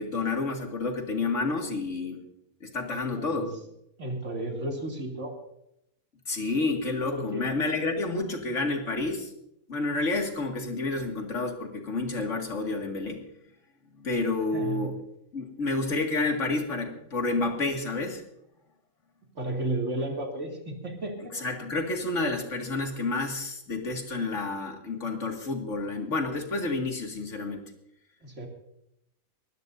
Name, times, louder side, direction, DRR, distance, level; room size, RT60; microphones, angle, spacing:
voice 1, 0.0-2.2 2.6-3.5 6.3-9.3 9.7-13.2 14.0-14.9 15.3-18.2 21.3-27.7, left 3 dB, 55° left, 2 dB, 2.5 m, -29 dB
voice 2, 2.9-3.5 4.0-5.4 7.1-7.5 14.5-14.9 19.3-21.3 28.2-28.5, right 1 dB, 55° right, 1 dB, 2.9 m, -33 dB
22.5 x 16.0 x 2.7 m, 0.78 s
omnidirectional pair, 1.5 m